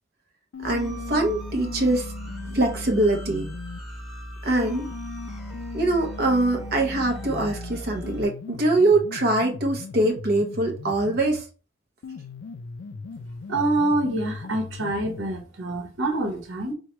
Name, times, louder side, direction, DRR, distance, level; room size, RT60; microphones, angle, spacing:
sound 1, 0.5-3.8 4.5-11.5 12.0-15.5, left 4 dB, 70° left, 0.4 m, -39 dB
sound 2, 0.6-8.2, equal, ahead, 0.9 m, -37 dB
voice 1, 0.6-2.1 2.5-3.5 4.4-4.8 5.7-11.4, right 2 dB, 50° right, 0.7 m, -23 dB
voice 2, 13.5-16.7, right 2 dB, 90° right, 1.0 m, -26 dB
4.6 x 2.2 x 2.9 m
head